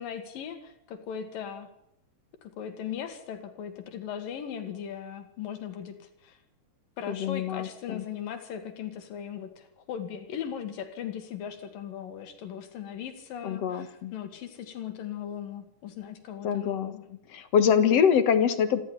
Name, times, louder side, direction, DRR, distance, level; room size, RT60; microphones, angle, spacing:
voice 1, 0.0-1.7 2.4-5.9 6.2-6.4 7.0-17.0, left 8 dB, 85° left, 7 dB, 3.5 m, -38 dB
voice 2, 7.1-8.0 13.4-14.1 16.4-18.8, left 7 dB, 55° left, 10 dB, 2.3 m, -25 dB
27.5 x 12.5 x 9.9 m, 0.80 s
omnidirectional pair, 3.9 m